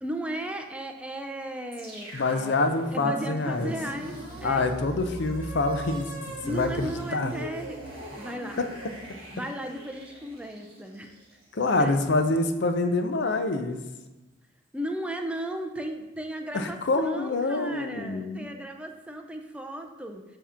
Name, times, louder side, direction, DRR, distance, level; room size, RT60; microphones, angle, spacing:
voice 1, 0.0-4.6 6.4-7.8 8.2-8.6 9.3-11.2 11.8-11.9 14.7-20.2, right 1 dB, 5° right, 4 dB, 0.4 m, -36 dB
sound 1, 1.7-11.9, right 1 dB, 25° right, 1.5 m, -40 dB
voice 2, 2.1-3.7 4.4-6.1 6.5-7.3 8.6-8.7 11.5-13.8 16.5-18.5, left 2 dB, 55° left, 8 dB, 0.5 m, -26 dB
7.1 x 2.9 x 5.5 m, 1.1 s
head